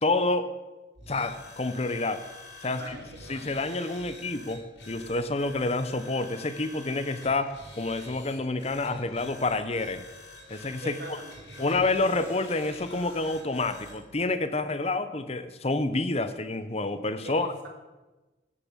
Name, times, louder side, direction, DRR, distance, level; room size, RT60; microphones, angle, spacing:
voice 1, 0.0-0.5 1.1-2.2 2.6-3.0 3.3-10.0 10.5-11.2 11.6-17.5, left 2 dB, 35° left, 11 dB, 0.9 m, -28 dB
sound 1, 0.9-14.0, left 2 dB, 80° left, 3.8 m, -47 dB
voice 2, 2.6-3.5 10.8-11.9 17.2-17.7, right 2 dB, 70° right, 3 dB, 2.5 m, -42 dB
16.0 x 7.0 x 7.4 m, 1.2 s
head